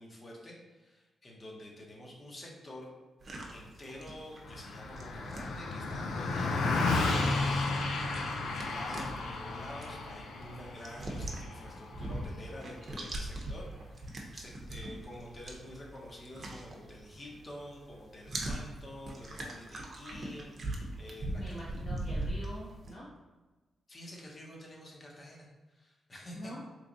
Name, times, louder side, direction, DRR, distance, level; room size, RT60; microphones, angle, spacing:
voice 1, 0.0-2.9 3.5-21.6 23.9-26.4, left 1 dB, 40° left, -2 dB, 1.0 m, -49 dB
sound 1, 3.2-17.5 17.7-22.9, right 1 dB, 50° right, 0.7 m, -41 dB
Car passing by, 4.4-14.0, left 3 dB, 80° left, 0.4 m, -33 dB
voice 2, 21.4-23.1 26.3-26.6, equal, 65° left, -10 dB, 1.1 m, -44 dB
3.1 x 2.5 x 3.9 m, 1.2 s
cardioid pair, 65°, 0 cm